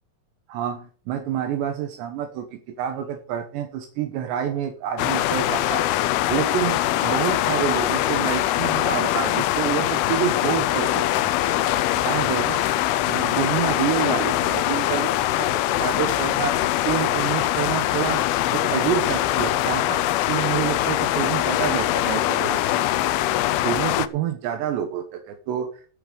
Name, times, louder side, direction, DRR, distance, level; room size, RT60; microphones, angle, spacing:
voice 1, 0.5-5.9 6.3-11.4 11.7-12.8 13.1-18.3 18.5-22.8 23.6-25.7, right 10 dB, 80° right, 5 dB, 3.3 m, -28 dB
sound 1, 5.0-24.1, left 14 dB, 80° left, 2.2 m, -22 dB
13.5 x 5.5 x 7.9 m, 0.42 s
omnidirectional pair, 5.0 m